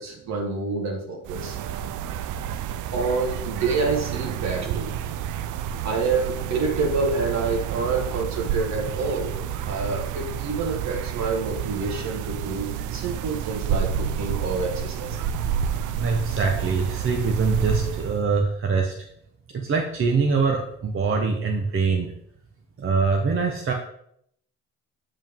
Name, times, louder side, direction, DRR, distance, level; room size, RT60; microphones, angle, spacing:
voice 1, 0.0-1.6 2.9-4.9 5.8-9.3 9.6-15.2, right 4 dB, 65° right, 2 dB, 1.8 m, -27 dB
sound 1, 1.2-18.2, right 9 dB, 80° right, 0.5 m, -30 dB
voice 2, 16.0-18.9 19.5-22.1 22.8-23.7, right 4 dB, 45° right, 2 dB, 0.9 m, -23 dB
7.6 x 5.1 x 3.7 m, 0.71 s
cardioid pair, 90°, 30 cm